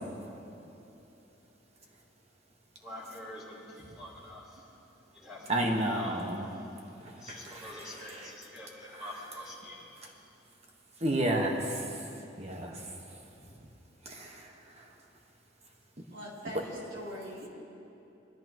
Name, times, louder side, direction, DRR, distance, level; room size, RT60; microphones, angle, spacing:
voice 1, 2.8-4.6 5.1-6.4 7.2-9.9, left 1 dB, 5° right, -8 dB, 2.4 m, -46 dB
voice 2, 5.5-6.4 7.3-7.7 11.0-11.8 12.4-12.8 14.1-14.3, right 1 dB, 35° right, 1 dB, 1.4 m, -30 dB
voice 3, 16.1-17.5, equal, 85° right, -6 dB, 3.6 m, -42 dB
21.0 x 13.0 x 3.1 m, 2.9 s
head